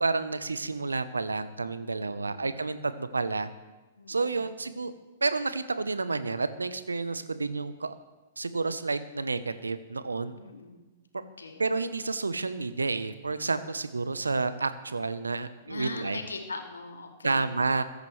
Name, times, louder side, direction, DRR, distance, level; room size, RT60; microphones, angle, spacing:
voice 1, 0.0-3.5 4.1-4.9 5.2-7.9 8.4-10.4 11.1-11.2 11.6-16.2 17.2-17.8, right 3 dB, 85° right, 12 dB, 0.9 m, -30 dB
voice 2, 1.9-2.5 4.0-4.4 7.2-7.4 10.3-10.8 11.2-11.6 15.6-17.5, left 3 dB, 85° left, 3 dB, 2.1 m, -41 dB
21.0 x 10.5 x 3.3 m, 1.2 s
figure-of-eight pair, 110°, 0 cm